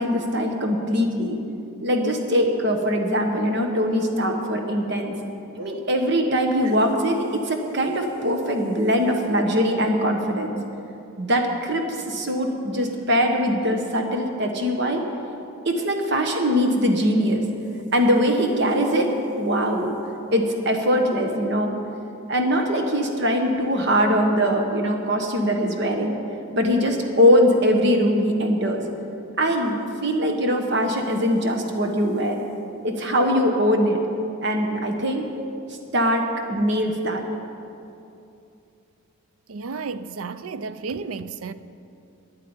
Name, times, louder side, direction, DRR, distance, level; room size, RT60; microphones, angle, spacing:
voice 1, 0.0-1.4 1.8-5.1 5.6-10.6 11.2-15.0 15.6-17.4 17.9-20.0 20.3-21.7 22.3-26.2 26.5-28.8 29.4-32.4 32.8-34.0 34.4-35.3 35.9-37.2, equal, 50° right, 1.2 m, -22 dB
voice 2, 39.5-41.5, right 4 dB, 80° right, 0.5 m, -32 dB
10.5 x 9.5 x 8.8 m
head